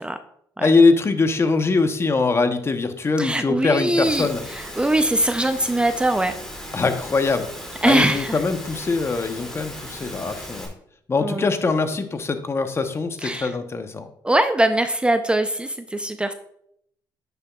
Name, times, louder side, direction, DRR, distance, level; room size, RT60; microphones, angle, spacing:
voice 1, 0.6-4.4 6.7-7.5 7.8-10.7 11.1-14.1, left 4 dB, 30° left, 8 dB, 0.8 m, -22 dB
voice 2, 3.2-6.3 7.8-8.4 11.2-11.5 13.2-13.5 14.2-16.3, right 1 dB, 10° right, 8 dB, 0.5 m, -22 dB
Engine / Mechanisms, 4.0-10.7, equal, 5° left, 2.5 m, -37 dB
9.7 x 6.9 x 2.3 m, 0.72 s
cardioid pair, 80°, 8 cm